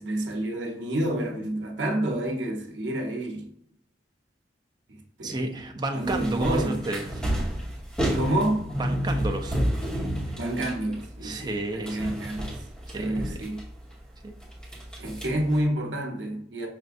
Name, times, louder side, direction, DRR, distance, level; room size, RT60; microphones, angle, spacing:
voice 1, 0.0-3.5 5.2-5.4 5.9-6.8 8.1-8.8 10.4-12.5 12.9-13.6 15.0-16.7, right 1 dB, 85° right, 0.8 m, -29 dB
voice 2, 5.2-7.2 8.8-9.6 11.2-12.2 12.9-13.2 14.2-14.3, right 2 dB, 25° right, 0.5 m, -31 dB
sound 1, 6.0-11.6 11.8-13.9 14.4-15.6, equal, 5° left, 1.0 m, -30 dB
6.0 x 2.5 x 2.5 m
head